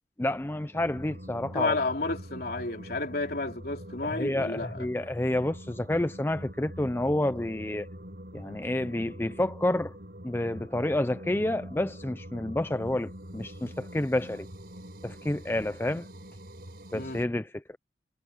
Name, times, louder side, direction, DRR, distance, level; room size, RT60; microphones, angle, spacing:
voice 1, 0.2-1.7 4.0-7.9 8.3-10.0 10.2-14.5 15.0-16.1 16.9-17.6, left 1 dB, 15° left, 0.5 m, -29 dB
sound 1, 0.7-17.2, equal, 55° right, 5.5 m, -44 dB
voice 2, 1.5-4.9 16.9-17.2, left 3 dB, 55° left, 3.6 m, -31 dB
head